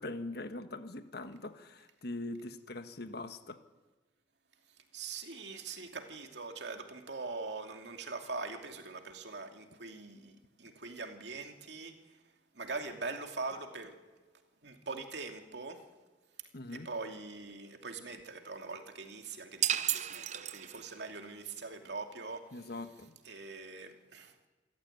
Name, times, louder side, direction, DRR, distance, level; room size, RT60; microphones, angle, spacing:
voice 1, 0.0-3.6 16.5-16.9 22.5-23.1, left 2 dB, 60° left, 1.5 m, -42 dB
voice 2, 4.9-12.0 12.5-14.0 14.6-15.8 16.8-22.4 23.3-24.3, right 3 dB, 65° right, 2.7 m, -42 dB
sound 1, 19.6-21.1, right 10 dB, 40° right, 0.7 m, -33 dB
27.5 x 14.0 x 9.2 m
head